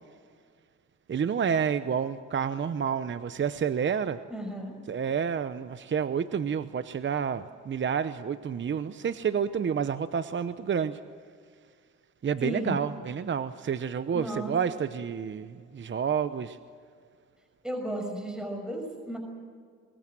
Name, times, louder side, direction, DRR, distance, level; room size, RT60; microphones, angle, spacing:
voice 1, 1.1-4.2 4.9-11.0 12.2-16.6, right 7 dB, 40° right, 12 dB, 0.9 m, -29 dB
voice 2, 4.3-4.8 12.4-12.8 14.1-14.5 17.6-19.2, right 1 dB, ahead, 3 dB, 5.8 m, -34 dB
27.0 x 22.0 x 7.6 m, 2.1 s
cardioid pair, 90°, 30 cm